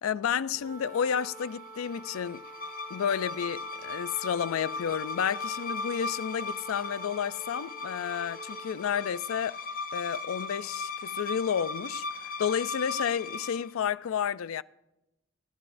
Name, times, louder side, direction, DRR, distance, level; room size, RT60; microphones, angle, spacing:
voice 1, 0.0-2.4 2.9-9.6 9.9-14.6, left 8 dB, 85° left, 0.4 m, -31 dB
sound 1, 0.5-9.0, right 2 dB, 40° right, 2.5 m, -47 dB
sound 2, 1.0-13.7, left 3 dB, 40° left, 0.6 m, -38 dB
27.0 x 12.0 x 2.6 m
head